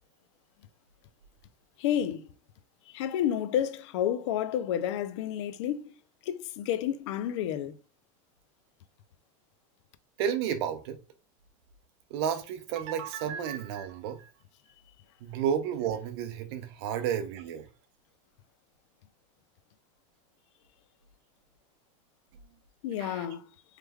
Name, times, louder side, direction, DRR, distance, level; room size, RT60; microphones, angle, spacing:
voice 1, 1.8-2.3 2.9-5.9 6.3-7.7 22.8-23.4, left 10 dB, 60° left, 0.4 m, -30 dB
voice 2, 10.2-11.0 12.1-14.3 15.2-17.7 23.0-23.3, right 8 dB, 50° right, 0.5 m, -32 dB
3.2 x 2.2 x 3.4 m
supercardioid pair, 175°, 17 cm